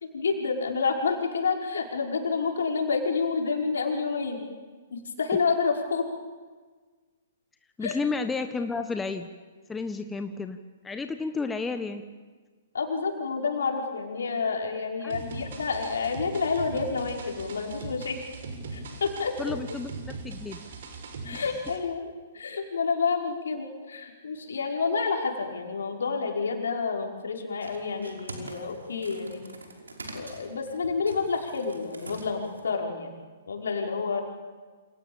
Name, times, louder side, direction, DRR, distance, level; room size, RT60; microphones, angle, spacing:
voice 1, 0.1-4.4 4.9-6.1 7.8-8.0 12.7-18.2 18.7-19.6 21.2-29.6 30.1-33.1 33.5-34.2, left 5 dB, 70° left, 1 dB, 5.4 m, -29 dB
voice 2, 7.8-9.3 9.7-10.6 10.8-12.0 15.0-15.2 19.4-20.6, left 4 dB, 10° left, 7 dB, 1.4 m, -31 dB
sound 1, 15.1-21.8, right 3 dB, 60° right, 5.7 m, -40 dB
sound 2, 27.6-32.7, right 2 dB, 80° right, 5.5 m, -44 dB
28.5 x 27.5 x 7.3 m, 1.4 s
figure-of-eight pair, 120°, 0 cm